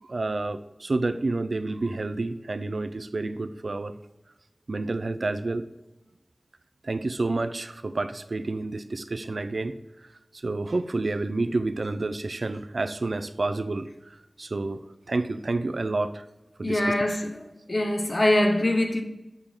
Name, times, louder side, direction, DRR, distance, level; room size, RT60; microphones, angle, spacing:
voice 1, 0.0-4.0 4.7-5.7 6.8-9.7 10.3-16.2 16.6-16.9, right 2 dB, 70° right, 0.4 m, -29 dB
voice 2, 16.6-19.0, left 1 dB, 50° left, 1.0 m, -24 dB
6.7 x 3.7 x 4.4 m
cardioid pair, 40°, 0 cm